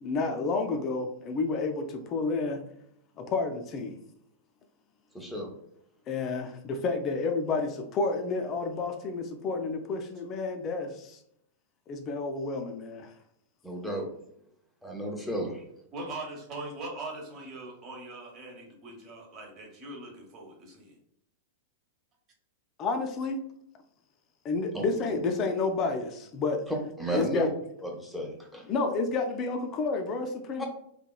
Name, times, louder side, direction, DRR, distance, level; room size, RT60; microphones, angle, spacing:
voice 1, 0.0-2.6 3.2-4.0 6.1-11.2 11.9-13.1 22.8-23.4 24.4-26.7 27.1-27.5 28.7-30.6, left 3 dB, 35° left, 4 dB, 0.3 m, -30 dB
voice 2, 5.1-5.5 13.6-14.1 14.8-15.6 24.7-24.8 27.0-27.5 27.8-28.7 30.6-30.7, right 1 dB, ahead, 0 dB, 0.6 m, -33 dB
voice 3, 15.9-20.9, right 2 dB, 35° right, 0 dB, 0.9 m, -41 dB
2.8 x 2.2 x 2.2 m, 0.72 s
figure-of-eight pair, 95°, 0 cm